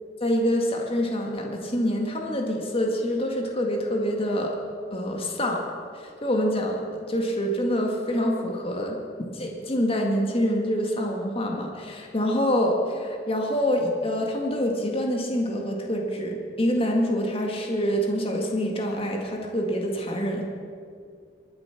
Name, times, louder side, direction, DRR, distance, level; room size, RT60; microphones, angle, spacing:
voice 1, 0.2-4.6 4.9-5.6 5.9-9.0 9.3-20.4, equal, 35° left, 1 dB, 2.0 m, -26 dB
23.5 x 8.7 x 6.0 m, 2.2 s
head